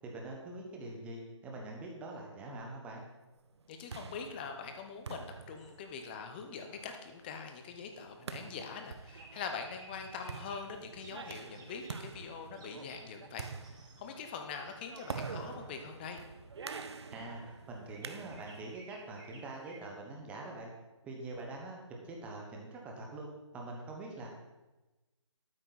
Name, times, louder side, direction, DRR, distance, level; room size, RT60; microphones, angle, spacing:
voice 1, 0.0-3.0 17.1-20.7 21.0-24.3, right 2 dB, 10° right, 0 dB, 1.1 m, -44 dB
sound 1, 3.5-18.7, right 5 dB, 60° right, 0.8 m, -47 dB
voice 2, 3.7-16.2, left 5 dB, 20° left, 5 dB, 0.9 m, -43 dB
sound 2, 5.6-5.8 9.1-10.7 11.0-12.0 12.5-13.1 13.4-14.1 14.6-15.4 17.9-19.8, right 3 dB, 40° right, 3.4 m, -56 dB
12.5 x 8.9 x 4.1 m, 1.1 s
hypercardioid pair, 160°, 16 cm